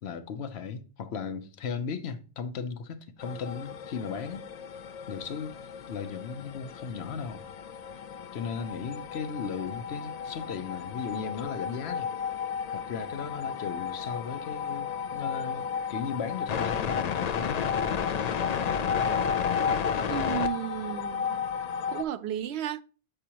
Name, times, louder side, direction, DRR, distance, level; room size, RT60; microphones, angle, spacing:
voice 1, 0.0-4.5 5.1-5.6 5.9-7.4 8.3-12.1 12.7-17.7, left 6 dB, 75° left, 1.0 m, -36 dB
sound 1, 3.2-22.0, left 7 dB, 55° left, 0.5 m, -32 dB
voice 2, 20.1-21.4 21.9-22.8, right 10 dB, 80° right, 0.8 m, -33 dB
7.7 x 4.9 x 2.9 m
omnidirectional pair, 1.1 m